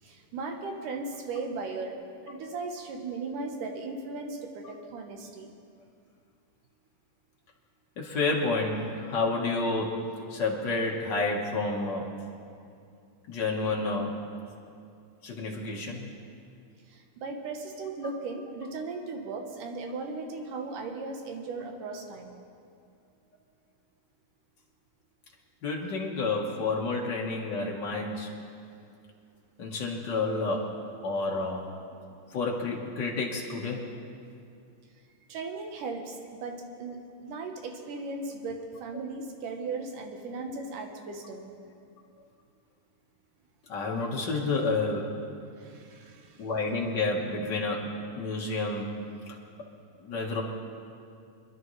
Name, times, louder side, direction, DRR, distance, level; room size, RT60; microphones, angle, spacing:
voice 1, 0.0-2.0 2.2-5.5 16.9-22.4 35.3-41.5 45.6-46.5, right 3 dB, 75° right, 3 dB, 2.5 m, -37 dB
voice 2, 8.0-12.2 13.3-14.3 15.2-16.1 25.6-28.3 29.6-31.7 32.3-33.9 43.7-45.2 46.4-49.0 49.3-49.4 50.0-50.4, left 3 dB, 55° left, -1 dB, 1.3 m, -30 dB
26.0 x 11.0 x 3.2 m, 2.4 s
omnidirectional pair, 3.8 m